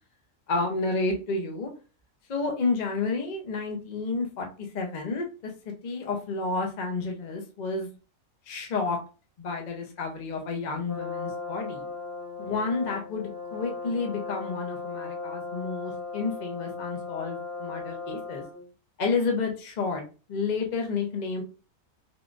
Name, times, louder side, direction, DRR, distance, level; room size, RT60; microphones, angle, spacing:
voice 1, 0.5-1.7 2.3-5.5 5.8-7.9 8.5-9.0 9.4-11.9 12.4-18.4 19.0-20.0 20.3-21.4, left 4 dB, 45° left, 2 dB, 0.5 m, -30 dB
Brass instrument, 10.9-18.7, left 4 dB, 15° left, 0.8 m, -37 dB
3.6 x 2.4 x 2.4 m, 0.34 s
omnidirectional pair, 1.4 m